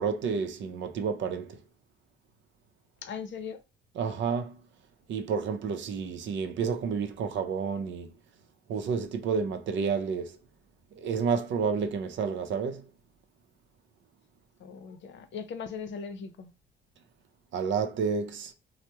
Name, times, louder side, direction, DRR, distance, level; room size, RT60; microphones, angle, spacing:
voice 1, 0.0-1.6 4.0-4.6 5.1-8.2 8.7-10.4 11.0-12.9 17.5-18.5, right 6 dB, 70° right, 0.6 m, -30 dB
voice 2, 3.0-3.6 14.6-16.5, left 6 dB, 65° left, 0.6 m, -39 dB
3.3 x 2.1 x 2.8 m
cardioid pair, 90°, 20 cm